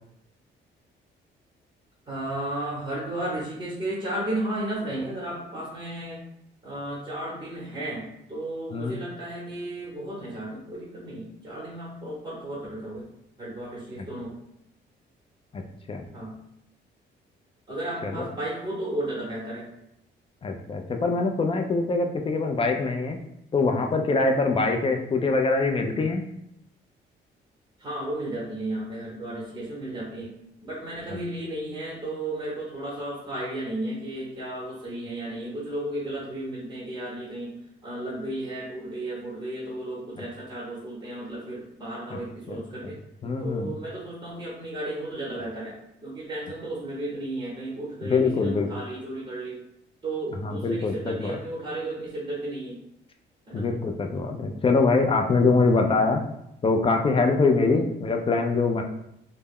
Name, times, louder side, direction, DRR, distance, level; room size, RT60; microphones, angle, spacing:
voice 1, 2.1-6.2 6.6-13.0 13.4-14.3 16.1-16.3 17.7-19.7 24.5-24.7 27.8-30.3 30.6-37.5 37.8-43.0 43.4-45.7 46.0-49.6 50.0-52.8 53.5-53.6 57.8-57.9, right 1 dB, 20° right, -6 dB, 0.9 m, -34 dB
voice 2, 20.4-23.2 23.5-26.2 31.1-31.2 40.2-40.3 42.1-42.2 42.5-42.6 43.2-43.8 48.0-48.7 50.4-51.4 53.5-56.2 56.6-58.8, left 3 dB, 30° left, 4 dB, 0.3 m, -24 dB
2.1 x 2.0 x 3.5 m, 0.79 s
cardioid pair, 90°, 20 cm